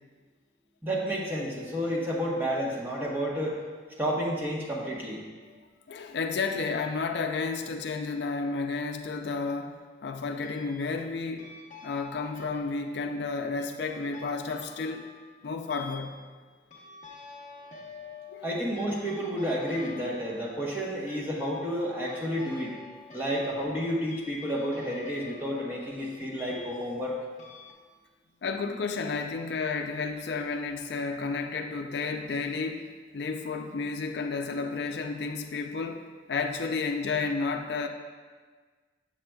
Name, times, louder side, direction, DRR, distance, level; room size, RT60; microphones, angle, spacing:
voice 1, 0.8-3.6 4.0-5.2 18.4-22.8 23.1-27.2, equal, 10° right, -4 dB, 0.9 m, -30 dB
voice 2, 5.9-9.8 10.0-11.5 11.8-15.1 15.4-16.2 18.3-18.5 28.4-32.9 33.1-37.9, left 4 dB, 65° left, 4 dB, 0.4 m, -32 dB
sound 1, 9.4-9.7 10.4-11.0 11.4-27.1 27.4-27.7, left 4 dB, 40° left, 0.9 m, -49 dB
7.4 x 7.3 x 2.3 m, 1.5 s
head